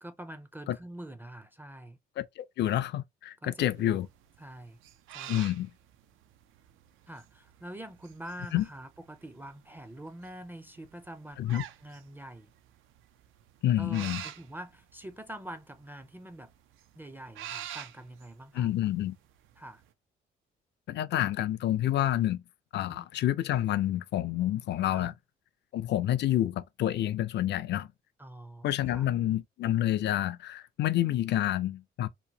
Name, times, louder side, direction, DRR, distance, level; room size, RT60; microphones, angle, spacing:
voice 1, 0.0-2.0 3.4-4.0 4.4-4.8 5.1-5.5 7.1-12.5 13.8-16.5 17.0-18.7 19.6-19.8 22.8-23.1 24.9-25.1 28.2-29.1, right 1 dB, 10° right, 0.4 m, -45 dB
voice 2, 2.2-4.1 5.3-5.7 8.5-8.6 11.4-11.6 13.6-14.2 18.5-19.2 20.9-22.4 22.7-25.1 25.7-27.9 28.6-32.1, left 13 dB, 60° left, 0.4 m, -28 dB
sound 1, 3.6-19.9, right 10 dB, 85° right, 0.4 m, -47 dB
2.9 x 2.1 x 2.7 m
cardioid pair, 90°, 20 cm